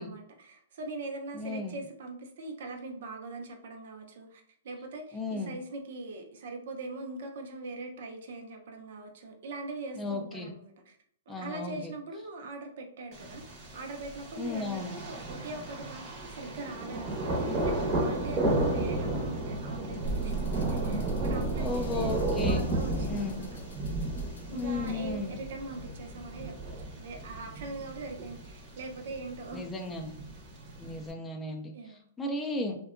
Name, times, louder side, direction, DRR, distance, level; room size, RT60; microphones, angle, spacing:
voice 1, 0.0-11.0 11.3-23.6 24.5-29.6 31.7-32.0, right 3 dB, 60° right, 3 dB, 0.6 m, -41 dB
voice 2, 1.3-1.8 5.1-5.5 10.0-10.5 11.3-11.9 14.4-14.9 21.6-22.7 23.1-23.4 24.5-25.3 29.5-30.1 30.8-31.7 32.2-32.8, left 3 dB, 10° left, 3 dB, 0.4 m, -34 dB
Thunder, 13.1-31.1, right 1 dB, 25° right, 0.7 m, -33 dB
sound 1, 20.0-26.1, right 4 dB, 85° left, 0.6 m, -39 dB
2.6 x 2.2 x 2.5 m, 0.66 s
hypercardioid pair, 150°, 0 cm